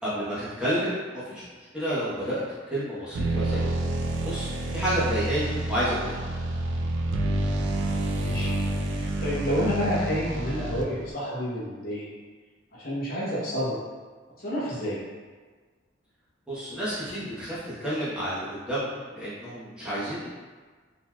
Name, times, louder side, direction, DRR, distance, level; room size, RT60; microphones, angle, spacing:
voice 1, 0.0-1.4 1.7-2.4 2.7-3.7 4.2-6.2 16.5-20.3, equal, 5° right, -12 dB, 1.0 m, -30 dB
sound 1, 3.1-11.1, right 1 dB, 75° right, 0.4 m, -28 dB
voice 2, 8.1-8.5 8.8-12.2 12.7-13.8 14.4-15.0, equal, 50° left, -8 dB, 0.9 m, -29 dB
3.8 x 2.9 x 2.3 m, 1.5 s
head